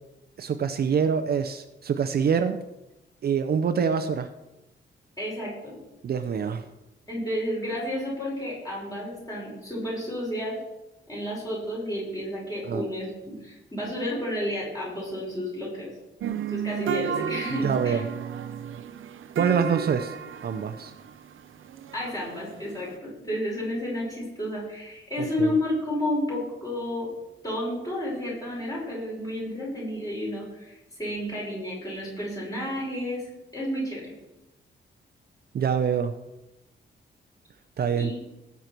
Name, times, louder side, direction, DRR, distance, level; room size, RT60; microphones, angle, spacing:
voice 1, 0.4-2.6 3.2-4.3 6.0-6.6 12.7-12.8 17.6-18.0 19.4-20.1 20.4-20.9 25.2-25.5 35.5-36.1 37.8-38.1, right 6 dB, 50° right, 8 dB, 0.7 m, -25 dB
voice 2, 5.2-5.8 7.1-10.6 11.1-15.9 16.5-18.0 21.9-27.1 27.4-33.2 33.5-34.0 38.0-38.1, left 1 dB, 20° left, -5 dB, 5.7 m, -31 dB
sound 1, 16.2-22.9, right 9 dB, 90° right, 0.7 m, -33 dB
18.0 x 8.3 x 4.5 m, 0.98 s
wide cardioid pair, 180°, 20 cm